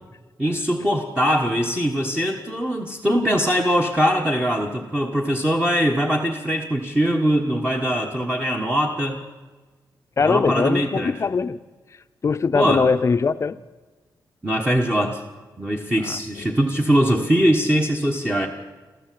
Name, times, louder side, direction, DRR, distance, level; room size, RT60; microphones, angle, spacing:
voice 1, 0.4-9.2 10.2-11.1 12.5-12.8 14.4-15.2 15.6-18.5, equal, 15° right, 1.3 m, -21 dB
voice 2, 10.2-11.6 12.2-13.6 16.0-16.5, left 5 dB, 40° left, 0.7 m, -21 dB
27.0 x 14.0 x 7.7 m
wide cardioid pair, 150°, 8 cm